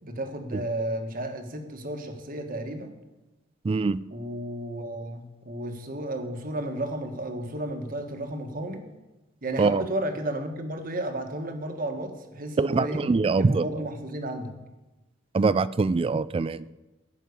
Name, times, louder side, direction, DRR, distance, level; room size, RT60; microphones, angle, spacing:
voice 1, 0.0-2.9 4.1-8.9 9.4-13.0 13.4-14.5, right 1 dB, 50° right, 5 dB, 1.5 m, -33 dB
voice 2, 3.6-4.0 9.6-9.8 12.6-13.6 15.3-16.7, right 4 dB, 30° right, 17 dB, 0.3 m, -23 dB
15.5 x 5.6 x 8.3 m, 1.1 s
head